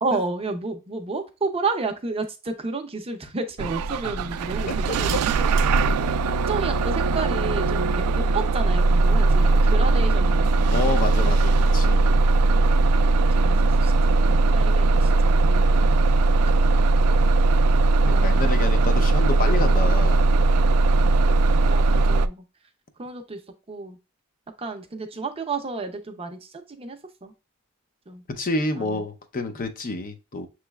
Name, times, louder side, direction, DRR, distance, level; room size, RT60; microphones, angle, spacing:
voice 1, 0.0-4.7 5.0-5.5 6.5-11.3 13.4-16.0 16.5-16.6 18.0-18.4 20.9-22.4 23.0-23.4 23.7-24.0 24.6-27.3 28.1-28.2 28.8-29.0, right 3 dB, 25° right, 0.6 m, -32 dB
Bus / Engine starting, 3.6-22.3, right 2 dB, 85° right, 0.3 m, -19 dB
voice 2, 4.7-5.0 10.7-12.2 18.1-20.4 28.3-30.5, left 2 dB, 40° left, 0.6 m, -29 dB
6.8 x 3.1 x 2.2 m
head